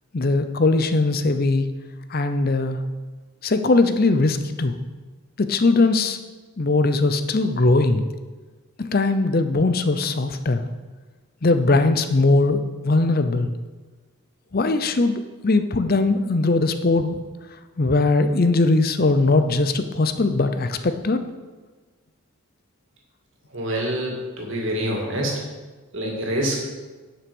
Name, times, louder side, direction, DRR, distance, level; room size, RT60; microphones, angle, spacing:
voice 1, 0.1-1.6 2.1-2.8 3.4-4.7 5.4-6.2 6.6-8.1 8.8-10.6 11.4-13.5 14.5-17.2 17.8-21.2, left 3 dB, 40° left, 9 dB, 0.6 m, -20 dB
voice 2, 23.5-25.4 25.9-26.6, right 1 dB, 55° right, -1 dB, 2.2 m, -26 dB
9.8 x 5.9 x 5.4 m, 1.3 s
head